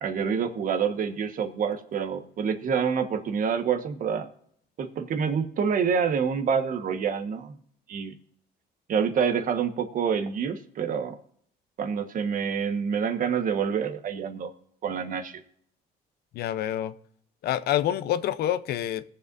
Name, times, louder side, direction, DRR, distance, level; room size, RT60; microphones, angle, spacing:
voice 1, 0.0-4.3 4.8-7.6 7.9-8.1 8.9-11.2 11.8-14.5 14.8-15.4, right 6 dB, 55° right, 1.4 m, -27 dB
voice 2, 16.3-16.9 17.4-19.0, left 11 dB, 70° left, 0.7 m, -27 dB
20.5 x 7.8 x 2.6 m
cardioid pair, 110°, 17 cm